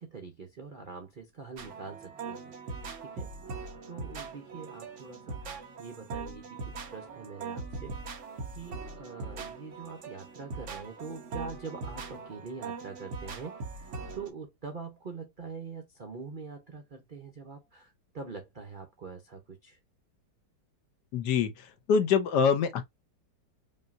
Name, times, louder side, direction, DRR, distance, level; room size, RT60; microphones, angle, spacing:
voice 1, 0.0-2.5 3.0-8.3 8.5-19.8, right 5 dB, 85° right, 0.4 m, -44 dB
sound 1, 1.6-14.3, right 4 dB, 50° right, 1.0 m, -41 dB
voice 2, 21.1-22.9, left 6 dB, 70° left, 1.2 m, -25 dB
5.3 x 2.7 x 2.5 m
omnidirectional pair, 2.1 m